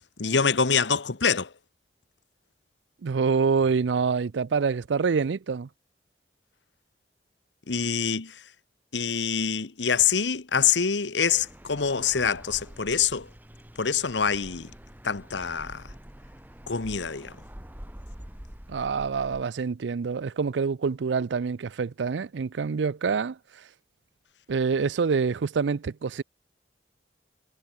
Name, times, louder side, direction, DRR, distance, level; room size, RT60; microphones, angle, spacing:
voice 1, 0.2-1.5 7.7-8.3 8.9-13.3 13.8-14.7 15.0-15.8 16.7-17.3, left 6 dB, 85° left, 1.2 m, -25 dB
voice 2, 3.0-5.7 18.7-23.4 24.5-26.2, right 5 dB, 85° right, 0.5 m, -26 dB
sound 1, 11.3-19.4, equal, 10° right, 1.6 m, -46 dB
head